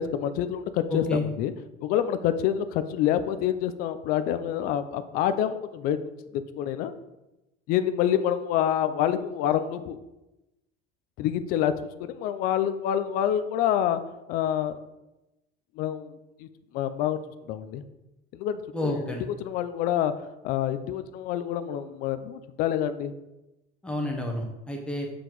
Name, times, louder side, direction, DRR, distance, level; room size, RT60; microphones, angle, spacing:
voice 1, 0.0-1.5 1.8-6.0 6.6-6.9 7.7-10.0 11.2-14.0 14.3-14.8 15.8-16.5 16.7-17.2 17.5-17.8 18.3-19.1 19.4-20.1 20.4-23.1, left 10 dB, 50° left, 11 dB, 0.5 m, -27 dB
voice 2, 0.9-1.2 18.7-19.2 23.8-25.1, left 1 dB, 5° left, 1 dB, 0.9 m, -30 dB
7.9 x 4.7 x 3.9 m, 0.97 s
cardioid pair, 170°, 19 cm